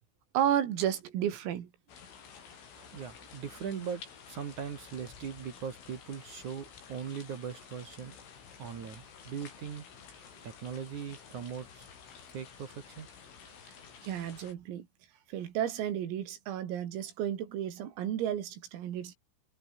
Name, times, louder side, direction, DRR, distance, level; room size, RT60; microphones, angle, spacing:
voice 1, 0.4-1.7 14.0-14.9 15.3-19.2, right 10 dB, 80° right, 5.4 m, -32 dB
Rain - Running water, 1.9-14.5, left 6 dB, 65° left, 7.6 m, -52 dB
voice 2, 2.9-4.0 4.3-8.2 8.6-9.8 10.4-11.9 12.3-13.1, right 7 dB, 50° right, 2.6 m, -40 dB
omnidirectional pair, 6.0 m